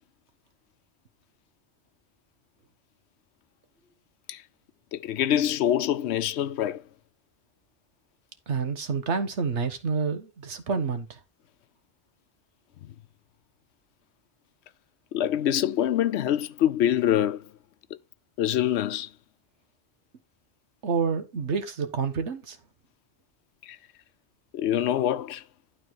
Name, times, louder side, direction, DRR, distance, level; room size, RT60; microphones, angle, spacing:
voice 1, 4.9-6.8 12.8-12.9 15.1-17.5 18.4-19.1 23.6-23.8 24.5-25.4, left 11 dB, 75° left, 0.9 m, -25 dB
voice 2, 8.5-11.2 20.8-22.6, right 5 dB, 90° right, 1.5 m, -28 dB
11.5 x 4.0 x 4.6 m
omnidirectional pair, 1.1 m